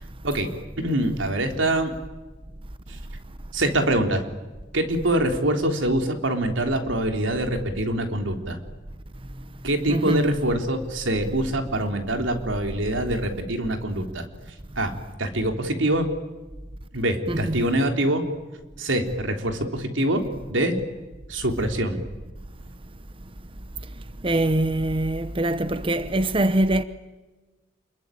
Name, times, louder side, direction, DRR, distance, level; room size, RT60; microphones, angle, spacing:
voice 1, 0.8-1.9 3.5-4.2 4.7-8.6 9.6-14.2 14.8-14.9 15.2-16.1 16.9-18.2 18.8-20.2 20.5-20.8 21.3-22.0, right 1 dB, 90° right, 3.6 m, -24 dB
voice 2, 9.9-10.3 17.3-17.4 24.2-26.8, right 1 dB, 30° right, 0.9 m, -23 dB
28.5 x 22.0 x 9.2 m
head